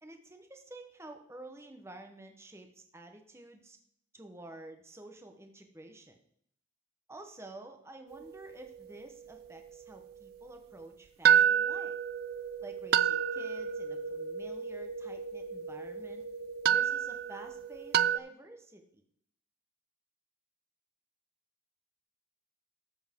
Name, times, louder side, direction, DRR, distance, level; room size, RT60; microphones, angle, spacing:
voice 1, 0.0-3.8 4.1-6.2 7.1-12.0 12.6-16.2 16.7-19.0, right 2 dB, 15° right, 5 dB, 0.9 m, -50 dB
sound 1, 8.1-9.7 10.1-10.2 11.2-18.2, right 8 dB, 50° right, 0.3 m, -30 dB
13.5 x 7.1 x 3.6 m, 0.67 s
head